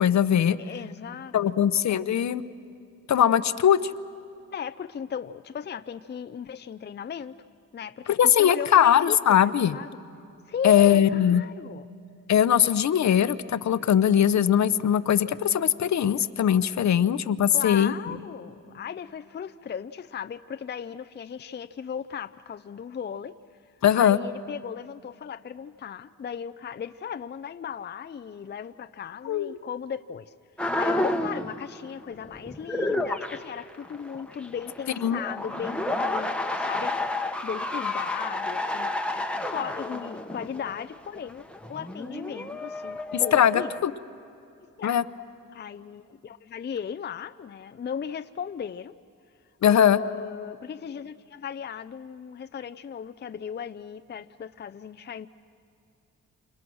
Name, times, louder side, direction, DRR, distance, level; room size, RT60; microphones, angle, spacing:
voice 1, 0.0-0.6 1.3-2.4 3.1-3.9 8.2-9.8 10.6-11.4 12.3-17.9 23.8-24.2 29.3-29.5 35.0-35.2 43.1-43.9 44.8-45.0 49.6-50.0, left 9 dB, 60° left, 0.8 m, -21 dB
voice 2, 0.6-1.6 4.5-7.4 7.7-9.9 10.5-11.8 17.5-23.4 23.9-30.3 30.8-38.9 39.4-43.7 44.8-45.0 45.5-48.9 49.6-55.3, left 7 dB, 35° left, 0.5 m, -36 dB
sound 1, 30.6-31.8 32.1-43.8, left 2 dB, 5° left, 1.2 m, -31 dB
29.0 x 28.5 x 6.3 m
cardioid pair, 115°, 32 cm